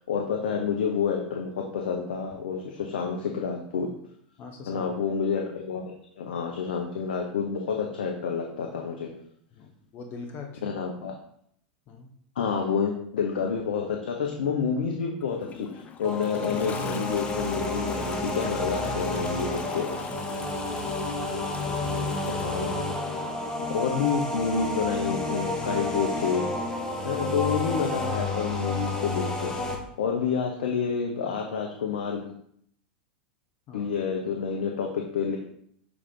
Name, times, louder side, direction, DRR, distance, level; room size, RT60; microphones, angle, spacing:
voice 1, 0.0-3.9 4.7-5.8 6.2-9.1 10.6-11.1 12.4-19.9 22.3-22.9 23.7-26.5 27.0-29.5 30.0-32.3 33.7-35.4, left 6 dB, 75° left, 2 dB, 0.9 m, -29 dB
voice 2, 4.4-4.9 9.5-10.7 11.9-12.1 19.8-20.5 33.7-33.9, left 4 dB, 45° left, 3 dB, 1.1 m, -42 dB
Toilet flush, 15.2-23.6 24.7-24.8, left 7 dB, 30° left, 0.5 m, -43 dB
sound 1, 16.0-29.8, left 2 dB, 10° left, 1.3 m, -30 dB
6.6 x 3.9 x 3.7 m, 0.67 s
hypercardioid pair, 100°, 5 cm